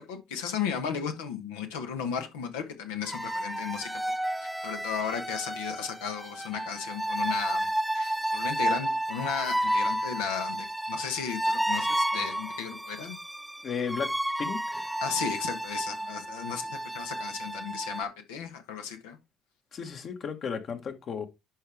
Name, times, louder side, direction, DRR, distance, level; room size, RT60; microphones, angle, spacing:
voice 1, 0.0-4.0 4.4-13.2 15.0-19.2, left 7 dB, 80° left, 1.3 m, -35 dB
sound 1, 3.0-18.0, right 1 dB, 5° right, 0.4 m, -31 dB
voice 2, 13.6-14.1 14.4-14.9 19.7-21.2, left 6 dB, 50° left, 1.6 m, -34 dB
11.0 x 4.7 x 3.5 m
hypercardioid pair, 55°, 0 cm